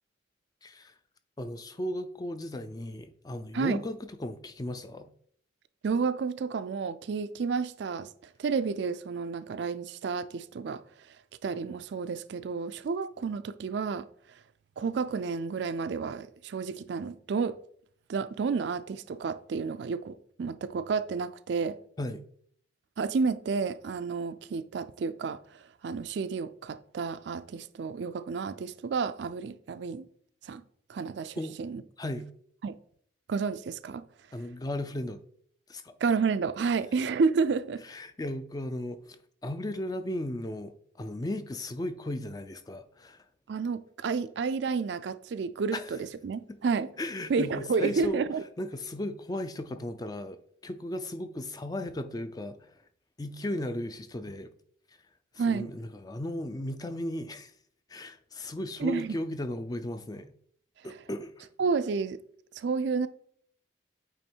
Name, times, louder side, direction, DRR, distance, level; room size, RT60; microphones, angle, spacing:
voice 1, 0.6-0.9 1.4-5.1 22.0-22.2 31.4-31.6 32.0-32.3 34.3-35.2 35.7-35.9 37.9-39.2 39.4-43.2 45.7-45.9 46.5-46.6 47.0-48.2 48.6-52.8 53.2-54.5 55.5-57.5 57.9-60.3 60.8-61.5, left 1 dB, 20° left, 0.4 m, -36 dB
voice 2, 5.8-8.1 8.4-10.8 11.4-14.1 14.8-17.6 18.1-21.8 23.0-30.1 30.4-30.6 30.9-31.8 32.6-32.7 33.3-34.0 36.0-37.8 43.5-46.9 47.3-48.4 55.4-55.7 58.8-59.2 61.6-62.2 62.6-63.1, right 5 dB, 65° right, 0.3 m, -30 dB
8.6 x 3.0 x 4.5 m
head